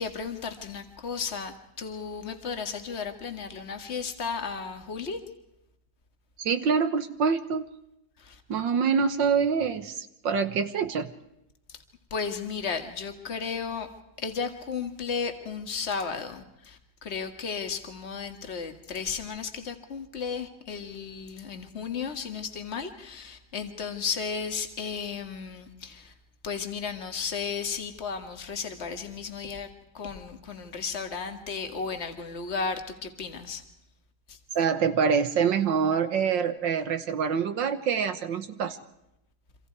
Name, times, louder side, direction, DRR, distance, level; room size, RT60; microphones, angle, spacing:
voice 1, 0.0-5.2 8.2-8.4 12.1-13.9 14.2-26.1 26.4-29.7 29.9-33.6 34.3-34.4, left 5 dB, 35° left, 7 dB, 2.1 m, -34 dB
voice 2, 6.4-7.6 8.5-11.1 34.6-38.8, right 6 dB, 70° right, 10 dB, 1.8 m, -25 dB
28.0 x 26.0 x 4.7 m, 0.85 s
omnidirectional pair, 2.1 m